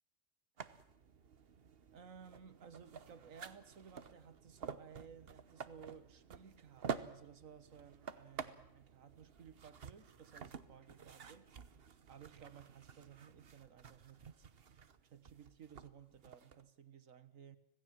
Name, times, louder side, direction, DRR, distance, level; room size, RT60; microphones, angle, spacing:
sound 1, 0.6-16.6, right 6 dB, 50° right, 1.2 m, -50 dB
voice 1, 1.9-11.5 12.1-14.5 15.0-17.6, right 7 dB, 90° right, 13 dB, 1.7 m, -57 dB
26.0 x 17.5 x 7.6 m, 0.81 s
omnidirectional pair, 1.3 m